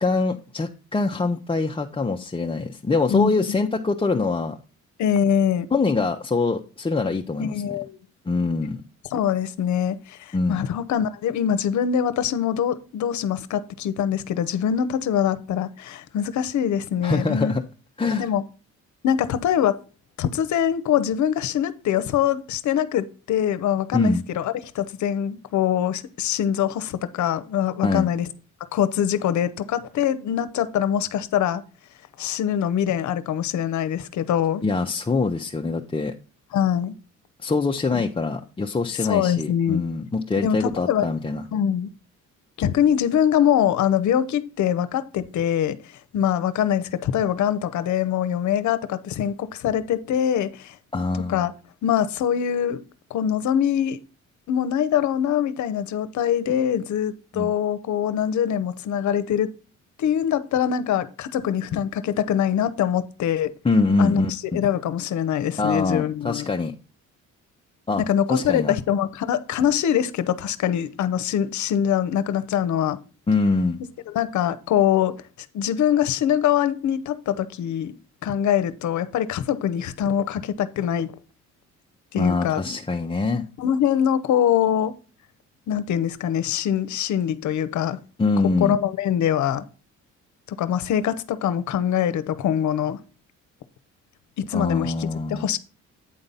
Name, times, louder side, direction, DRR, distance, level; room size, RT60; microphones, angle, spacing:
voice 1, 0.0-4.6 5.7-7.5 8.2-8.8 10.3-10.6 17.0-17.6 18.0-18.3 23.9-24.2 27.8-28.1 34.6-36.1 37.4-41.4 50.9-51.5 57.3-57.5 63.6-64.6 65.6-66.7 67.9-68.0 68.3-68.7 73.3-73.8 82.2-83.5 88.2-88.8 94.5-95.5, left 3 dB, 20° left, 0.7 m, -24 dB
voice 2, 3.1-3.6 5.0-5.7 7.4-8.0 9.1-17.6 18.1-18.4 19.0-19.8 20.2-28.3 28.7-31.6 32.2-34.6 36.5-36.9 37.9-38.0 39.0-39.8 40.4-41.1 41.5-41.9 42.6-50.8 51.3-51.5 51.8-52.8 53.1-54.0 54.5-59.5 60.0-63.5 64.0-64.2 64.5-66.5 68.0-73.0 74.1-75.2 75.5-78.0 78.2-81.1 82.1-82.6 83.6-84.9 85.7-88.0 88.6-89.6 90.6-93.0 94.4-95.6, left 9 dB, 70° left, 0.8 m, -23 dB
8.9 x 3.9 x 5.5 m
cardioid pair, 90°, 30 cm